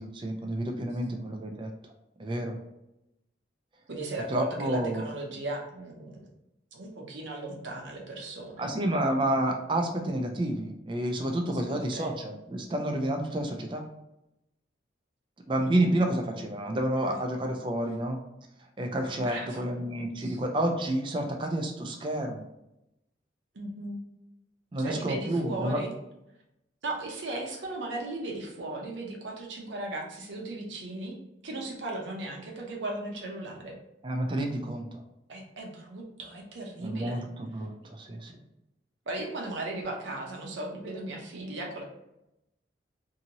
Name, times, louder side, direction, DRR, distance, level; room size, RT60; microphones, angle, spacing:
voice 1, 0.0-1.7 2.2-2.6 4.3-5.0 8.6-13.8 15.5-18.2 18.8-22.4 24.7-25.8 34.0-34.9 36.8-38.3, right 1 dB, 25° right, 3 dB, 0.4 m, -29 dB
voice 2, 3.9-6.3 6.7-8.7 11.7-12.1 15.6-15.9 17.0-17.2 19.2-19.7 20.2-20.4 23.5-24.0 24.8-25.9 26.8-31.1 31.4-33.8 35.3-37.2 39.1-41.8, right 2 dB, 80° right, 0 dB, 0.7 m, -37 dB
2.8 x 2.6 x 2.8 m, 0.88 s
head